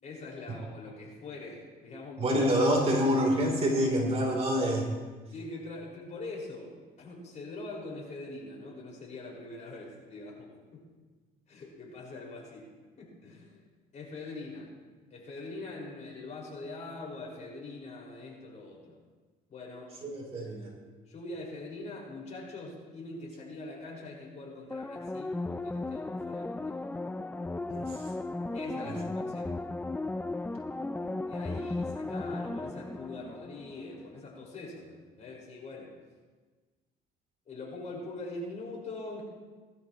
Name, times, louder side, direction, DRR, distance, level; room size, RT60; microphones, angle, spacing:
voice 1, 0.0-2.4 2.8-3.0 5.3-10.8 11.5-12.7 13.0-13.7 13.9-14.7 15.1-19.0 19.5-19.9 21.1-26.8 28.5-29.5 31.3-35.9 37.5-39.2, left 2 dB, 45° left, -3 dB, 5.2 m, -43 dB
voice 2, 2.2-4.9 20.0-20.7 27.7-28.1 28.8-29.0, equal, 35° right, 0 dB, 3.4 m, -27 dB
sound 1, 24.7-34.1 34.4-34.5, left 2 dB, 10° left, 0.4 m, -36 dB
19.5 x 12.5 x 3.1 m, 1.3 s
cardioid pair, 110°, 17 cm